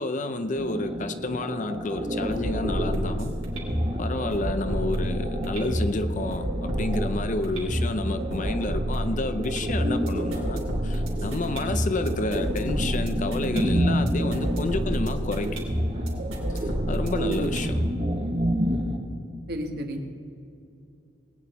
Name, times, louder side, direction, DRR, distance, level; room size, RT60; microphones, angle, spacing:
voice 1, 0.0-3.3 4.0-15.6 16.5-17.8, left 2 dB, 40° left, 10 dB, 0.6 m, -30 dB
sound 1, 0.6-19.0, equal, 30° right, 1.1 m, -31 dB
sound 2, 1.9-17.9, equal, 80° right, 3.0 m, -29 dB
voice 2, 17.1-17.5 19.5-20.1, right 2 dB, 55° right, 4 dB, 1.3 m, -30 dB
20.0 x 9.1 x 4.2 m, 2.7 s
head